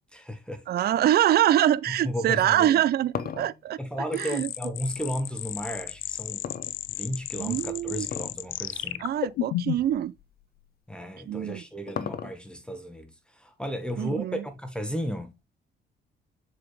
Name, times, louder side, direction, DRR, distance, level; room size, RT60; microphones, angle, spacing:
voice 1, 0.1-0.6 1.9-2.8 3.8-6.4 6.9-9.0 10.9-13.1 13.3-15.3, equal, 5° left, 1.3 m, -34 dB
voice 2, 0.7-3.8 4.1-4.5 7.4-8.1 9.0-10.1 11.3-11.6 14.0-14.4, right 12 dB, 50° right, 0.4 m, -24 dB
sound 1, 2.6-5.1 6.4-7.3 8.0-8.5 8.8-8.9 9.7-9.8 11.2-12.7, left 7 dB, 50° left, 0.8 m, -36 dB
sound 2, 4.1-10.0, left 14 dB, 80° left, 0.5 m, -33 dB
7.0 x 4.9 x 3.2 m
cardioid pair, 90°, 20 cm